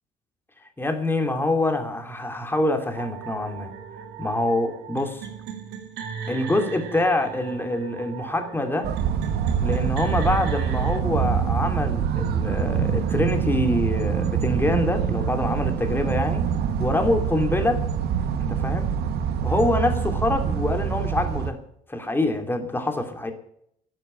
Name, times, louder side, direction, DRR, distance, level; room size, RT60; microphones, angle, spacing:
voice 1, 0.8-3.7 4.2-5.3 6.3-8.9 9.6-16.5 16.8-17.8 18.4-18.9 19.4-21.6 21.9-23.3, left 1 dB, 10° left, 6 dB, 2.7 m, -25 dB
sound 1, 3.0-11.0, right 7 dB, 90° right, 2.2 m, -37 dB
sound 2, 8.8-21.5, right 7 dB, 75° right, 1.5 m, -25 dB
12.5 x 7.6 x 9.7 m, 0.69 s
cardioid pair, 110°, 17 cm